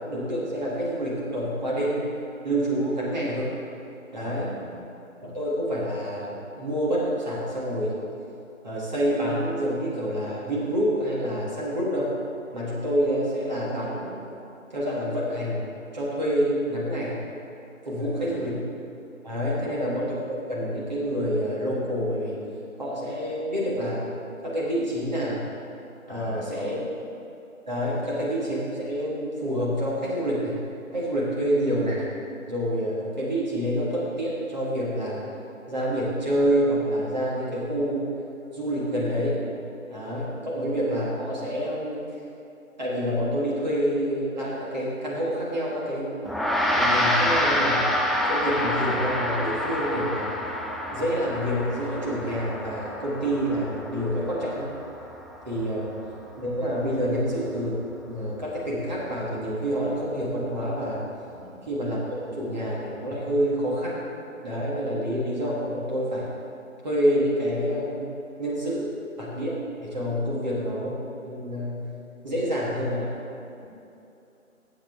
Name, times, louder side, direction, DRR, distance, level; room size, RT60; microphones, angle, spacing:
voice 1, 0.1-2.1 2.4-3.5 4.1-4.5 5.2-8.0 8.6-12.1 12.5-14.2 14.7-17.2 17.8-18.6 19.2-22.4 22.8-24.1 24.4-25.5 26.1-26.8 27.7-30.6 30.9-32.1 32.5-35.3 35.7-38.1 38.5-39.4 39.9-42.0 42.8-46.2 46.7-47.9 48.3-50.4 50.9-54.7 55.4-55.9 56.4-61.1 61.6-64.1 64.4-66.3 66.8-68.1 68.4-71.9 72.2-73.1, equal, 30° right, -6 dB, 1.7 m, -27 dB
voice 2, 4.2-4.9 18.0-18.6 19.5-19.9 26.1-26.9 55.8-55.9 61.3-61.6 64.9-65.0 73.6-73.7, left 1 dB, 40° left, -4 dB, 2.0 m, -43 dB
Gong, 46.2-55.9, left 1 dB, ahead, 0.3 m, -27 dB
12.5 x 7.7 x 3.6 m, 2.8 s
figure-of-eight pair, 160°, 42 cm